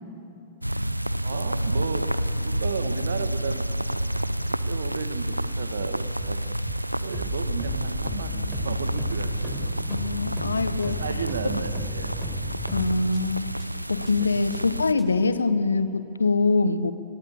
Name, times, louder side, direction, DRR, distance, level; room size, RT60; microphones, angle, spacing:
sound 1, 0.6-14.9, right 1 dB, 90° right, 0.6 m, -29 dB
voice 1, 1.2-2.1 2.4-3.6 4.0-6.4 7.0-9.7 10.8-12.1 14.2-14.3, right 6 dB, 65° right, 10 dB, 1.6 m, -34 dB
sound 2, 6.2-6.3 6.7-6.8 7.1-13.2 13.6-13.7 14.1-14.2 14.5-14.6 15.0-15.1, equal, ahead, 5.2 m, -36 dB
voice 2, 9.9-11.0 12.7-13.5 13.9-16.9, left 3 dB, 75° left, 14 dB, 1.1 m, -24 dB
27.0 x 20.5 x 8.5 m, 2.8 s
figure-of-eight pair, 100°, 0 cm